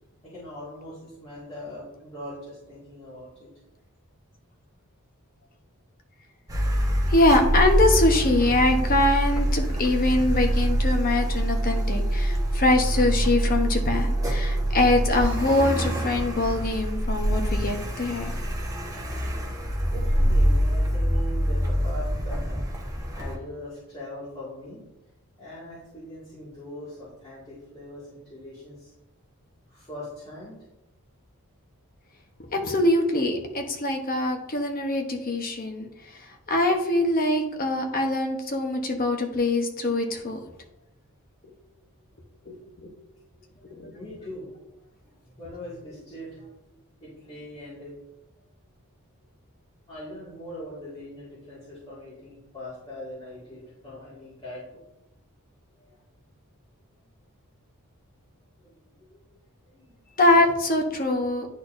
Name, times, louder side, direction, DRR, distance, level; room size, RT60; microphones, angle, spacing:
voice 1, 0.2-3.5 19.9-22.6 23.1-24.8 25.4-28.9 29.7-30.6 42.5-42.7 43.4-43.7 43.9-47.9 49.9-54.6 55.7-56.0 58.6-59.2 59.6-59.9, left 1 dB, 25° left, -10 dB, 2.0 m, -41 dB
Car, 6.5-23.4, right 1 dB, 15° right, 1.0 m, -25 dB
voice 2, 7.1-18.3 32.5-35.9 36.1-36.2 36.5-40.4 42.5-42.6 42.8-42.9 43.7-43.9 60.2-61.5, left 2 dB, 40° left, 3 dB, 0.9 m, -23 dB
10.0 x 4.2 x 2.6 m, 0.89 s
head